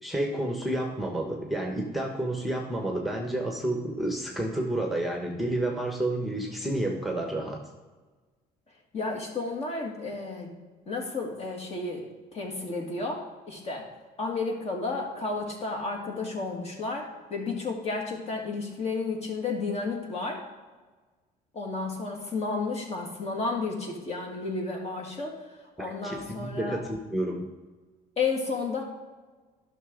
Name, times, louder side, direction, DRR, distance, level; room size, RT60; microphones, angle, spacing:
voice 1, 0.0-7.6 25.8-27.5, right 1 dB, ahead, 1 dB, 1.1 m, -30 dB
voice 2, 8.9-10.5 10.9-12.1 12.3-13.2 13.5-13.8 14.2-20.4 21.5-25.4 25.8-26.8 28.2-28.8, left 3 dB, 40° left, 0 dB, 2.0 m, -32 dB
11.0 x 6.0 x 3.8 m, 1.3 s
cardioid pair, 110°, 17 cm